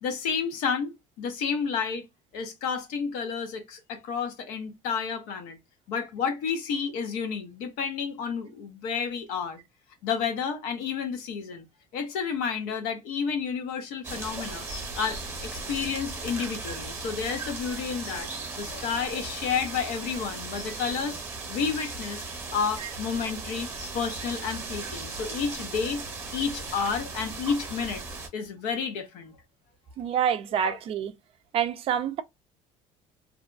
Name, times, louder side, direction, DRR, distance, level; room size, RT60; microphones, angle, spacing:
voice 1, 0.0-2.1 2.3-5.6 5.9-9.6 10.0-11.7 11.9-14.7 15.0-18.3 18.6-21.2 21.5-22.2 22.5-26.1 26.3-28.0 28.3-29.3 30.6-30.8, left 6 dB, 85° left, 0.8 m, -31 dB
sound 1, 14.0-28.3, right 3 dB, 20° right, 0.8 m, -37 dB
voice 2, 30.0-31.1 31.5-32.2, right 9 dB, 40° right, 0.4 m, -27 dB
2.5 x 2.2 x 2.4 m
cardioid pair, 150°, 14 cm